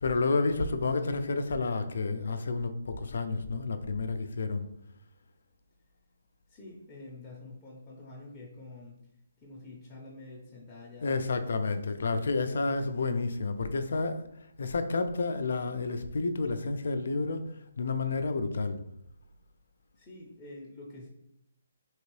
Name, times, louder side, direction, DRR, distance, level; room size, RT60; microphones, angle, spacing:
voice 1, 0.0-4.7 11.0-14.3 14.6-18.8, left 3 dB, 70° left, 9 dB, 0.4 m, -30 dB
voice 2, 6.5-9.0 9.4-11.2 20.0-21.1, left 2 dB, 15° left, -7 dB, 0.6 m, -47 dB
3.0 x 2.8 x 3.1 m, 0.79 s
hypercardioid pair, 160°, 0 cm